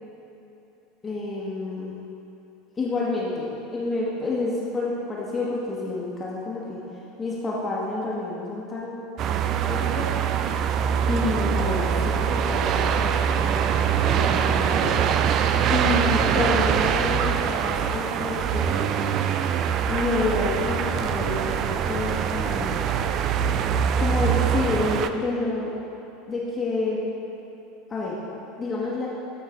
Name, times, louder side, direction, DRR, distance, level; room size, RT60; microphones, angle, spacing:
voice 1, 1.0-1.9 2.8-6.8 7.2-8.9 9.2-10.1 11.1-15.1 15.7-19.0 19.9-22.9 23.9-25.7 26.3-27.0 27.9-28.2 28.6-29.1, left 2 dB, 20° left, -6 dB, 1.4 m, -29 dB
sound 1, 9.2-25.1, right 8 dB, 40° right, 0.4 m, -23 dB
13.5 x 5.5 x 3.7 m, 2.8 s
figure-of-eight pair, 75°, 0 cm